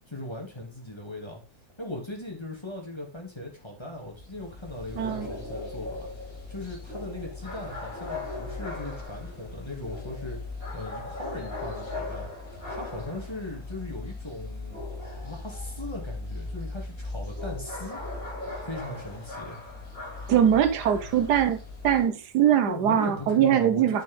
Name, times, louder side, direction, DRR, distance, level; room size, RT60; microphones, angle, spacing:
voice 1, 0.1-1.4 1.8-6.1 6.5-10.4 10.7-12.3 12.7-14.8 15.2-18.0 18.6-19.6 22.7-24.0, left 1 dB, 15° left, 2.3 m, -38 dB
sound 1, 3.9-22.1, left 2 dB, 60° left, 4.5 m, -38 dB
voice 2, 5.0-5.3 20.3-21.6 21.8-24.0, right 9 dB, 85° right, 1.5 m, -22 dB
9.8 x 5.2 x 3.6 m
omnidirectional pair, 1.7 m